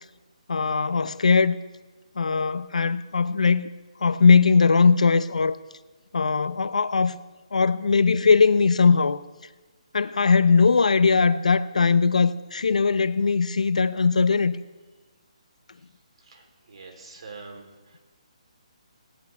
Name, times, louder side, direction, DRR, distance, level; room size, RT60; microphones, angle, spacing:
voice 1, 0.5-1.6 2.2-3.7 4.0-5.6 6.1-7.2 7.5-9.2 9.9-14.6, left 5 dB, 85° left, 0.9 m, -20 dB
voice 2, 16.2-18.0, right 4 dB, 55° right, 3.7 m, -45 dB
18.5 x 18.0 x 3.5 m
hypercardioid pair, 170°, 4 cm